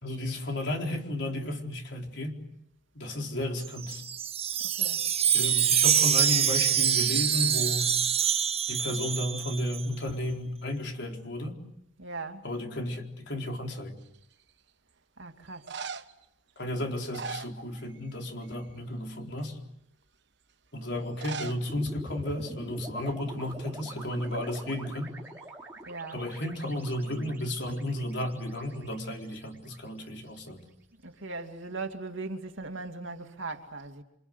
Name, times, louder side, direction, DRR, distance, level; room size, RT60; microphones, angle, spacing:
voice 1, 0.0-2.4 2.9-4.0 5.3-7.9 8.7-11.6 12.4-14.0 16.6-19.6 20.7-25.1 26.1-30.6, left 1 dB, 65° left, 2 dB, 4.3 m, -33 dB
Wind chime, 3.6-9.9, right 9 dB, 30° right, 1.0 m, -25 dB
voice 2, 12.0-12.4 15.2-15.6 25.9-26.2 31.0-34.0, right 3 dB, 85° right, 5 dB, 2.6 m, -39 dB
sound 1, 14.0-14.5 15.5-16.2 16.9-18.1 18.4-18.8 19.4-19.5 21.0-21.6 21.9-22.0 22.2-22.3 23.1-23.3 23.6-24.8 28.7-29.3, right 5 dB, 65° right, 1.1 m, -41 dB
sound 2, 21.7-30.0, right 1 dB, 10° right, 4.0 m, -45 dB
28.5 x 26.0 x 8.1 m, 0.79 s
head